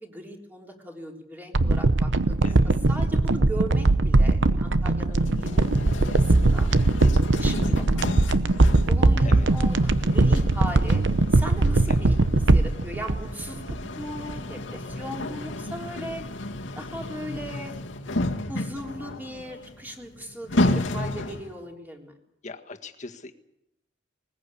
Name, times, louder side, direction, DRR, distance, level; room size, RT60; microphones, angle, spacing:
voice 1, 0.0-2.5 2.9-6.8 7.4-8.3 8.9-11.0 11.3-12.2 12.5-13.6 14.0-16.2 16.8-17.7 18.5-22.1, equal, 10° right, 1 dB, 3.6 m, -38 dB
sound 1, 1.5-14.0 14.3-14.4, right 2 dB, 70° right, 0.9 m, -21 dB
voice 2, 2.4-2.8 5.2-5.3 7.4-7.6 9.2-9.5 11.9-12.1 22.4-23.3, left 3 dB, 40° left, 4 dB, 1.8 m, -41 dB
sound 2, 5.2-21.6, left 1 dB, 90° left, 2.0 m, -33 dB
20.5 x 20.5 x 8.5 m, 0.81 s
head